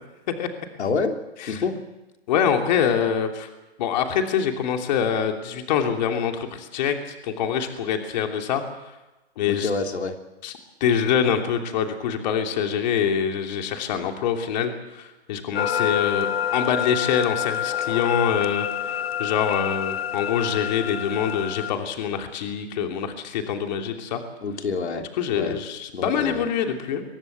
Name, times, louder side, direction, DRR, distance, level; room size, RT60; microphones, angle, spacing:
voice 1, 0.8-1.8 9.5-10.2 24.4-25.0 25.3-25.6 25.9-26.4, left 4 dB, 90° left, 4 dB, 3.2 m, -27 dB
voice 2, 2.3-3.5 3.8-8.6 9.4-9.7 10.4-10.5 10.8-24.2 25.2-27.0, left 8 dB, 40° left, 4 dB, 3.0 m, -25 dB
sound 1, 15.6-21.7, left 9 dB, 65° left, 1.3 m, -27 dB
24.0 x 19.0 x 8.0 m, 1.0 s
hypercardioid pair, 155°, 32 cm